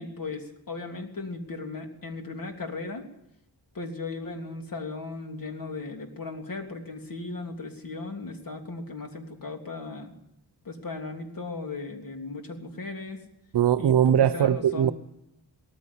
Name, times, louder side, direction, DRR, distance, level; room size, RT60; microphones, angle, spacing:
voice 1, 0.0-3.0 3.7-10.1 10.6-13.2 13.8-13.9 14.3-14.9, left 3 dB, 55° left, 3.3 m, -37 dB
voice 2, 13.5-14.9, right 9 dB, 85° right, 0.8 m, -21 dB
18.5 x 14.5 x 9.9 m
wide cardioid pair, 115°, 40 cm